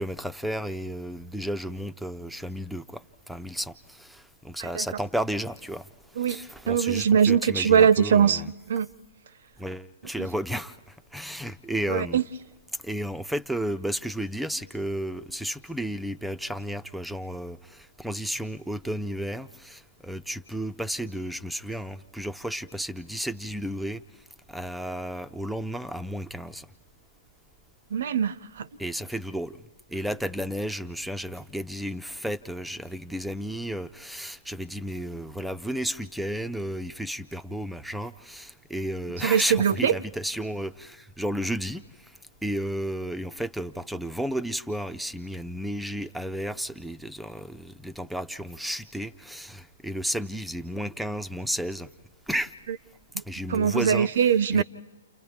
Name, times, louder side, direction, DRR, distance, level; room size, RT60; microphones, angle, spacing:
voice 1, 0.0-5.9 6.3-8.5 9.6-12.2 12.8-24.0 24.5-26.7 28.8-51.9 52.3-52.5 53.2-54.1 54.5-54.6, equal, ahead, 0.6 m, -33 dB
voice 2, 6.2-8.4 8.7-8.9 10.2-10.3 11.9-12.2 27.9-28.7 39.2-40.0 53.5-54.6, right 8 dB, 60° right, 0.7 m, -22 dB
29.5 x 29.5 x 3.6 m
figure-of-eight pair, 120°, 0 cm